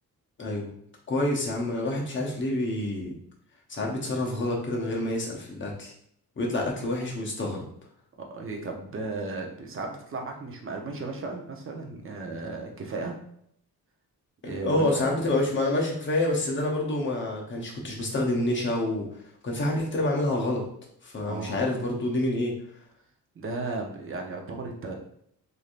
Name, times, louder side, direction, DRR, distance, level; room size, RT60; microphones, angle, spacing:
voice 1, 1.1-3.2 3.7-5.9 6.4-7.6 14.4-19.1 19.4-20.6 21.0-22.5, left 1 dB, 30° left, -1 dB, 0.8 m, -27 dB
voice 2, 8.3-13.2 14.4-15.1 21.3-21.5 23.4-25.0, right 3 dB, 35° right, 2 dB, 0.6 m, -35 dB
3.2 x 2.7 x 2.4 m, 0.69 s
cardioid pair, 110°, 37 cm